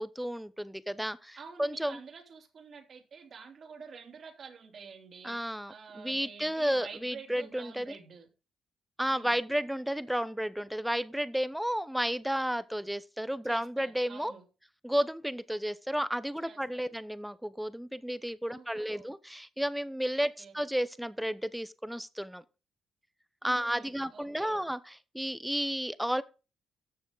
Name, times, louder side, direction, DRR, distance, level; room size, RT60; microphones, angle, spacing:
voice 1, 0.0-2.0 5.2-7.9 9.0-14.3 14.8-22.4 23.4-26.2, equal, 5° right, 0.8 m, -32 dB
voice 2, 1.4-8.3 9.0-9.4 13.4-14.4 16.4-16.9 18.5-19.1 20.2-20.5 23.4-24.6, right 5 dB, 50° right, 3.0 m, -49 dB
13.0 x 7.0 x 4.0 m
cardioid pair, 90°, 0 cm